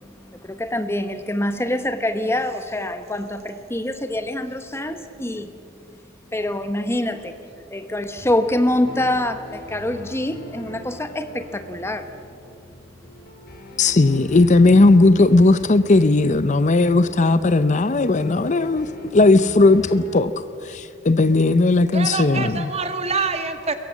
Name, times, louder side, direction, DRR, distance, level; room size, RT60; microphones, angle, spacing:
voice 1, 0.3-5.5 6.3-7.4 7.7-12.1, left 1 dB, 15° left, 1.0 m, -25 dB
sound 1, 8.2-20.2, left 1 dB, 60° left, 6.6 m, -42 dB
voice 2, 13.8-18.9 19.1-20.3 20.6-22.7, left 2 dB, 40° left, 0.6 m, -16 dB
voice 3, 21.9-23.7, right 4 dB, 35° right, 2.0 m, -25 dB
22.5 x 22.5 x 7.4 m
head